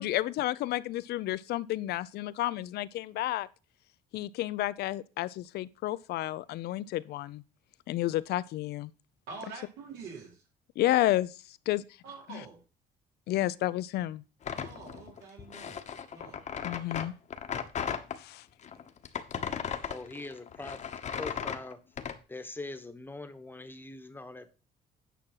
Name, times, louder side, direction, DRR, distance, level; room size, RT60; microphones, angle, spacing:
voice 1, 0.0-3.5 4.1-7.4 7.9-8.9 10.8-11.8 12.3-12.4 13.3-14.2 16.6-17.1 18.2-18.5, left 15 dB, 75° left, 0.6 m, -31 dB
voice 2, 9.3-10.4 12.0-12.6 14.6-15.8 16.1-16.4, right 5 dB, 80° right, 4.4 m, -46 dB
sound 1, 14.4-18.2 18.6-22.2, left 7 dB, 45° left, 1.2 m, -36 dB
voice 3, 19.8-20.8 21.1-21.8 22.3-24.5, left 2 dB, 10° left, 1.2 m, -42 dB
9.2 x 6.1 x 5.6 m
cardioid pair, 110°, 17 cm